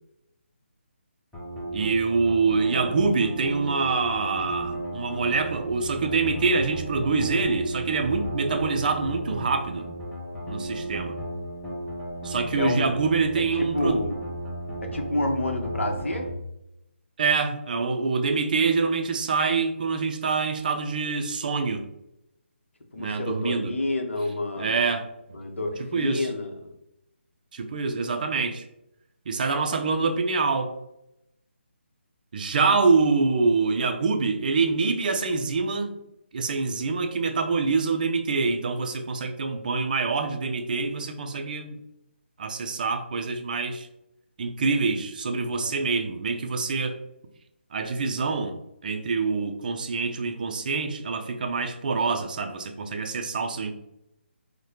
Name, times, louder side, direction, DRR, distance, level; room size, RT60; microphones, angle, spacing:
sound 1, 1.3-16.3, right 1 dB, ahead, 0.8 m, -34 dB
voice 1, 1.7-9.9 10.5-11.2 12.2-14.0 17.2-21.9 23.0-23.7 24.6-25.1 25.9-26.3 27.5-28.6 29.3-30.8 32.3-36.0 36.3-41.7 42.4-43.9 44.4-47.0 47.7-48.6 48.8-53.7, right 4 dB, 45° right, 6 dB, 0.4 m, -25 dB
voice 2, 12.5-12.9 13.4-14.2 14.9-16.3 22.9-24.8 25.3-26.6 45.5-45.8, left 2 dB, 80° left, 3 dB, 0.7 m, -29 dB
4.7 x 2.1 x 2.7 m, 0.84 s
figure-of-eight pair, 150°, 7 cm